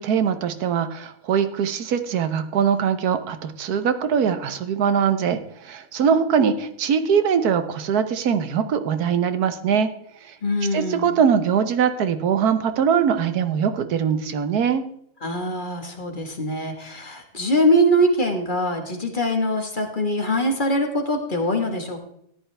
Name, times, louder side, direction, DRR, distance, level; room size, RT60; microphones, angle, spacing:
voice 1, 0.0-9.9 10.2-10.4 10.7-14.8, right 7 dB, 90° right, 10 dB, 1.4 m, -22 dB
voice 2, 10.4-11.1 15.2-22.0, equal, 35° left, 4 dB, 1.6 m, -23 dB
14.5 x 10.5 x 3.3 m, 0.70 s
omnidirectional pair, 1.6 m